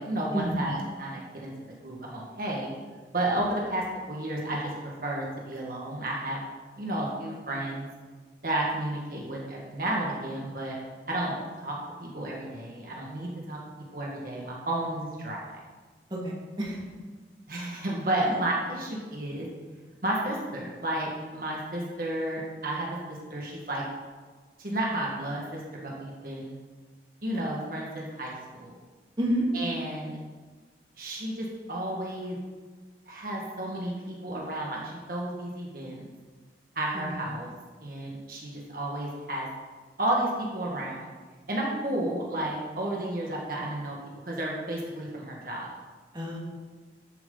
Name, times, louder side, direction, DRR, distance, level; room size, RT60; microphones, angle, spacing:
voice 1, 0.0-1.5 1.8-2.7 3.1-4.7 5.0-6.4 6.8-7.9 8.4-10.8 11.1-11.8 12.0-13.6 13.9-15.6 17.5-19.5 20.0-23.8 24.6-26.6 27.2-28.7 29.5-30.2 31.0-32.4 33.1-34.8 35.1-36.0 36.8-37.5 37.8-39.5 40.0-41.1 41.5-44.0 44.2-45.8, right 1 dB, 50° right, -3 dB, 1.8 m, -32 dB
voice 2, 16.1-16.8 18.2-18.4 29.2-29.5 36.9-37.1 46.1-46.4, right 1 dB, 25° right, -4 dB, 2.0 m, -30 dB
13.0 x 7.4 x 4.0 m, 1.4 s
head